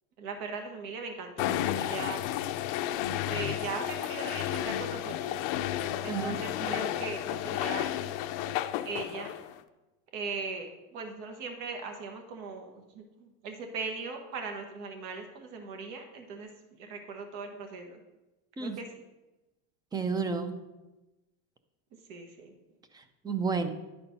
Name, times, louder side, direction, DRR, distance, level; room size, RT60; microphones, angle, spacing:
voice 1, 0.2-2.2 3.3-5.4 6.0-7.9 8.8-9.3 10.1-16.5 16.8-18.0 18.6-18.9 22.1-22.5, right 4 dB, 65° right, 4 dB, 1.3 m, -39 dB
sound 1, 1.4-9.6, left 12 dB, 70° left, 0.6 m, -32 dB
voice 2, 19.9-20.6 23.2-23.7, right 4 dB, 10° right, 9 dB, 0.4 m, -31 dB
11.0 x 4.3 x 5.2 m, 1.0 s
cardioid pair, 145°, 35 cm